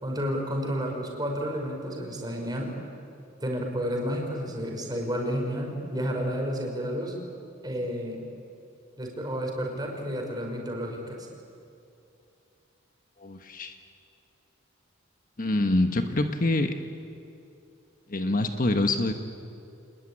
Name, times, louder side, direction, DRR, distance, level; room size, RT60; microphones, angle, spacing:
voice 1, 0.0-2.7 3.4-7.2 7.6-8.3 9.0-11.3, equal, 20° right, 1 dB, 5.2 m, -31 dB
voice 2, 13.2-13.7 15.4-16.7 18.1-19.1, left 2 dB, 45° left, 6 dB, 1.3 m, -25 dB
27.5 x 20.5 x 9.9 m, 2.6 s
head